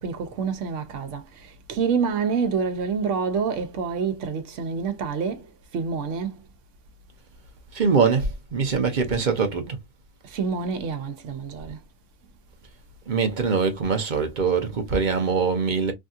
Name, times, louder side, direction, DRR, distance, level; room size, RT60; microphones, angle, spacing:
voice 1, 0.0-5.5 5.7-6.3 10.2-11.8, right 5 dB, 70° right, 1.0 m, -27 dB
voice 2, 7.7-9.8 13.1-15.9, right 5 dB, 45° right, 0.7 m, -23 dB
3.4 x 2.6 x 2.3 m
omnidirectional pair, 1.3 m